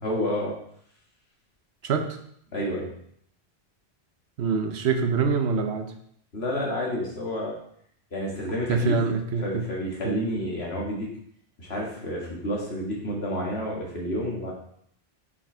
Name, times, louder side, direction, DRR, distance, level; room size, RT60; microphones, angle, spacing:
voice 1, 0.0-0.5 2.5-2.9 6.3-7.5 8.1-9.0 9.4-11.1 11.6-14.5, equal, 75° left, -3 dB, 2.1 m, -29 dB
voice 2, 1.8-2.2 4.4-5.9 8.7-9.6 10.0-10.3, right 5 dB, 80° right, 6 dB, 1.0 m, -25 dB
5.7 x 4.8 x 4.5 m, 0.68 s
omnidirectional pair, 1.1 m